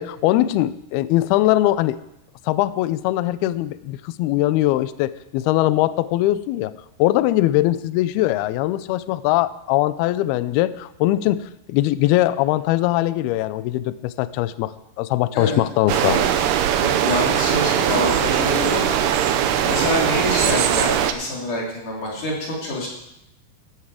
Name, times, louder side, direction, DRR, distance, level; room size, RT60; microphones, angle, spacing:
voice 1, 0.0-2.0 2.5-6.7 7.0-11.4 11.7-14.7 15.0-16.2, left 15 dB, 80° left, 15 dB, 2.3 m, -21 dB
sound 1, 15.9-21.1, right 10 dB, 75° right, 2.8 m, -20 dB
voice 2, 16.8-19.0 19.5-22.9, left 1 dB, 50° left, -3 dB, 4.5 m, -26 dB
16.0 x 13.0 x 4.9 m, 0.83 s
omnidirectional pair, 5.1 m